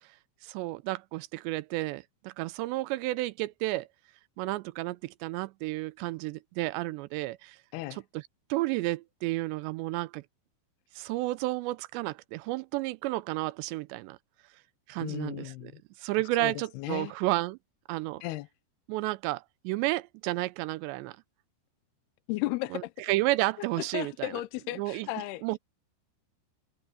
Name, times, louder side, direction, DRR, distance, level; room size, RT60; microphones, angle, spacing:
voice 1, 0.4-3.9 4.4-7.6 7.9-8.0 8.5-10.2 11.0-14.2 14.9-15.7 16.0-17.6 17.9-18.2 18.9-21.2 22.7-24.3 24.8-25.1 25.4-25.6, right 19 dB, 90° right, 2.9 m, -31 dB
voice 2, 15.0-15.7 16.4-17.1 18.2-18.5 22.3-22.9 23.8-25.4, left 17 dB, 80° left, 2.6 m, -35 dB
open air
omnidirectional pair, 4.9 m